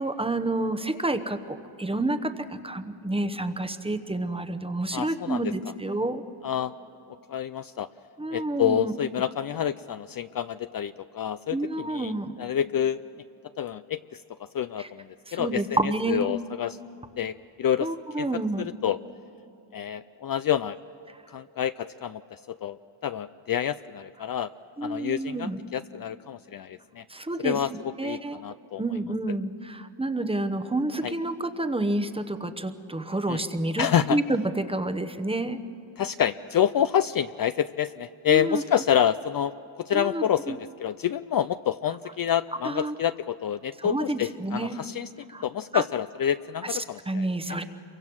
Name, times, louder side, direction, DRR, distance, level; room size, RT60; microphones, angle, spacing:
voice 1, 0.0-6.2 8.2-8.9 11.5-12.4 14.8-14.9 15.3-16.3 17.8-18.7 21.1-21.2 24.8-25.6 27.1-27.6 28.0-28.4 28.8-35.6 38.3-38.6 39.9-40.6 42.6-42.9 43.8-44.8 45.3-45.4 45.7-45.8 46.7-46.8 47.1-47.6, right 2 dB, 10° right, 9 dB, 0.9 m, -29 dB
voice 2, 4.9-5.5 6.4-6.7 7.3-7.9 8.3-13.0 13.6-16.8 17.2-17.9 18.2-18.3 18.6-19.0 19.7-20.8 21.3-24.5 24.8-27.0 27.4-28.8 31.0-31.1 33.3-33.4 33.8-34.2 36.0-45.1 45.4-47.3, left 9 dB, 45° left, 12 dB, 0.5 m, -28 dB
28.5 x 24.0 x 6.2 m, 2.9 s
wide cardioid pair, 145°, 49 cm